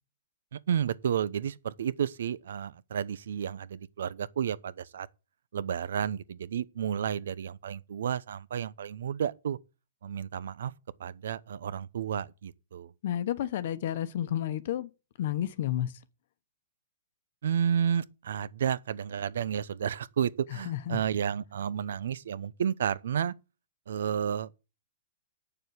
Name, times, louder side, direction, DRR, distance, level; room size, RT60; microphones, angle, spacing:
voice 1, 0.5-5.1 5.5-9.6 10.0-10.7 11.0-12.9 17.4-23.3 23.9-24.6, right 8 dB, 75° right, 0.7 m, -31 dB
voice 2, 13.0-14.9 15.2-16.0 20.5-21.0, left 11 dB, 50° left, 0.9 m, -31 dB
9.0 x 6.9 x 8.0 m
hypercardioid pair, 165°, 0 cm